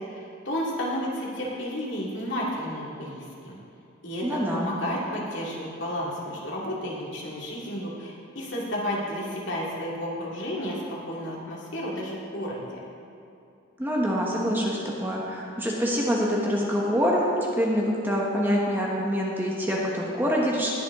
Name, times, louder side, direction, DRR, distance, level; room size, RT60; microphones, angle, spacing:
voice 1, 0.0-3.6 4.0-12.8, equal, 60° left, -4 dB, 2.3 m, -32 dB
voice 2, 4.2-4.7 13.8-17.3 17.5-20.7, equal, 10° right, -3 dB, 1.3 m, -25 dB
20.0 x 7.3 x 3.7 m, 2.7 s
head